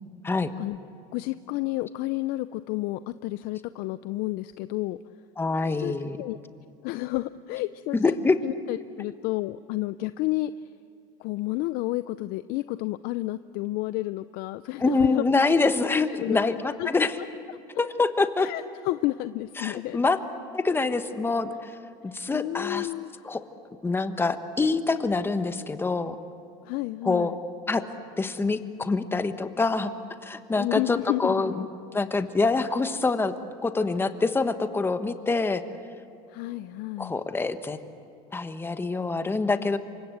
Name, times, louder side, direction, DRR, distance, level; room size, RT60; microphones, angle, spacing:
voice 1, 1.1-5.0 5.8-6.4 6.8-8.2 8.4-10.7 11.2-15.2 16.2-16.9 17.2-17.6 18.4-20.0 22.3-23.1 26.6-27.4 30.6-31.7 36.3-37.2, left 18 dB, 60° left, 14 dB, 0.6 m, -31 dB
voice 2, 5.4-6.2 7.9-8.4 14.8-17.1 17.8-18.5 19.6-20.2 20.5-21.7 22.0-22.9 23.2-23.4 23.8-26.1 27.0-27.3 27.7-27.8 28.2-29.9 30.2-31.6 31.9-33.3 33.6-35.6 37.0-37.8 38.3-39.8, left 3 dB, 15° left, 9 dB, 1.3 m, -25 dB
28.0 x 24.5 x 7.9 m, 2.4 s
supercardioid pair, 125°, 18 cm